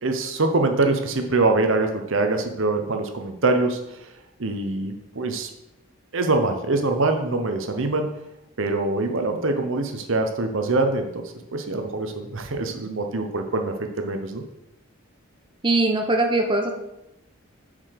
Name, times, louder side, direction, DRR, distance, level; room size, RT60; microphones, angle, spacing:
voice 1, 0.0-4.1 4.4-5.5 6.1-8.1 8.6-11.1 11.5-14.4, right 2 dB, 60° right, 5 dB, 0.8 m, -24 dB
voice 2, 15.6-16.7, right 2 dB, 20° right, 3 dB, 0.9 m, -21 dB
7.3 x 5.0 x 6.6 m, 0.88 s
head